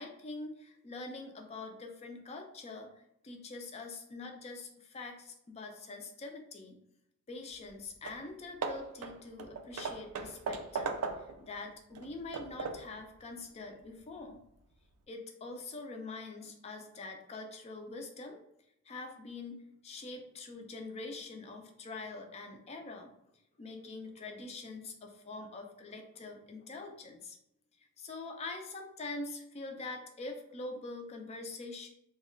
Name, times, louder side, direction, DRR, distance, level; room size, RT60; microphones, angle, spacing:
voice 1, 0.0-6.8 7.3-14.4 15.1-18.4 18.9-23.1 23.6-27.4 28.0-31.9, left 3 dB, 30° left, 3 dB, 0.4 m, -44 dB
Hammer / Wood, 7.7-7.8 8.0-8.3 8.6-11.5 11.9-13.0, right 4 dB, 90° right, 0.4 m, -38 dB
2.3 x 2.1 x 3.6 m, 0.78 s
head